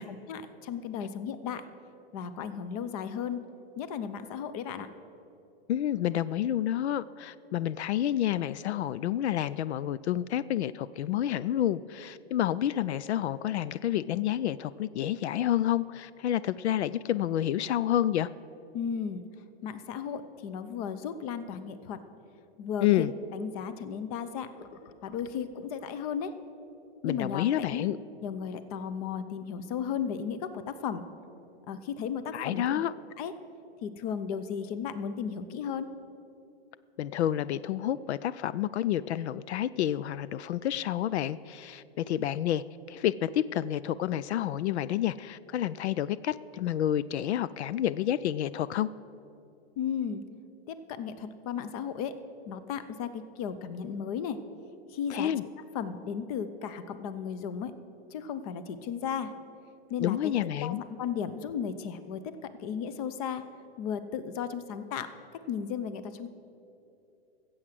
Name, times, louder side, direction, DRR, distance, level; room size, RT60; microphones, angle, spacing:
voice 1, 0.1-1.6 2.1-3.4 3.8-4.9 18.7-19.2 19.6-22.0 22.6-26.3 27.0-27.9 28.2-31.0 31.7-32.8 33.2-33.3 33.8-35.9 49.8-50.2 50.7-52.1 52.5-54.4 54.9-55.5 55.7-57.7 58.1-59.3 59.9-60.3 60.6-63.4 63.8-65.1 65.5-66.3, left 7 dB, 35° left, 12 dB, 0.7 m, -35 dB
voice 2, 5.7-18.3 22.8-23.1 27.0-28.0 32.3-32.9 37.0-48.9 55.1-55.4 60.0-60.8, left 11 dB, 85° left, 17 dB, 0.5 m, -29 dB
14.5 x 7.9 x 7.6 m, 2.8 s
hypercardioid pair, 150°, 32 cm